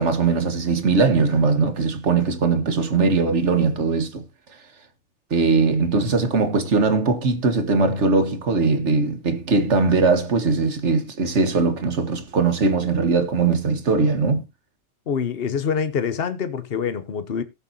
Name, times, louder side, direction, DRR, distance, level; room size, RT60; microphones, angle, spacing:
voice 1, 0.0-4.3 5.3-14.4, right 4 dB, 35° right, 1.6 m, -20 dB
voice 2, 15.1-17.4, left 6 dB, 90° left, 0.5 m, -25 dB
18.5 x 7.5 x 2.8 m
omnidirectional pair, 2.4 m